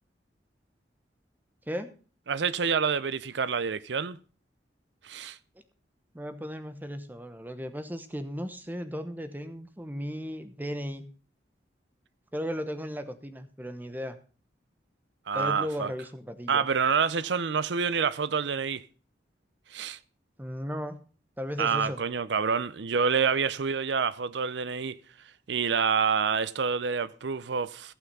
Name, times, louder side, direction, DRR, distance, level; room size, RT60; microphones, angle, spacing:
voice 1, 2.3-4.2 5.0-5.4 15.3-15.9 16.5-18.8 19.7-20.0 21.6-25.0 25.5-27.9, right 6 dB, 80° right, 0.6 m, -27 dB
voice 2, 6.1-11.0 12.3-14.2 15.3-16.7 20.4-21.0 21.4-22.0, equal, 10° right, 0.9 m, -36 dB
15.0 x 5.9 x 5.3 m
head